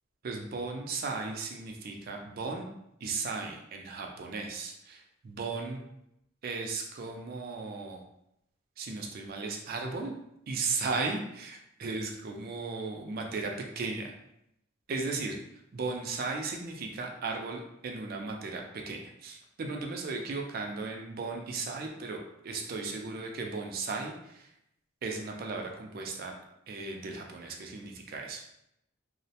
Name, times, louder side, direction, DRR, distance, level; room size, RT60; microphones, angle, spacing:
voice 1, 0.2-2.7 3.0-5.9 6.4-8.0 8.8-10.1 10.5-14.1 14.9-15.4 15.7-24.5 25.0-26.3 26.7-28.4, right 3 dB, 45° right, 2 dB, 0.3 m, -36 dB
2.4 x 2.0 x 2.7 m, 0.80 s
head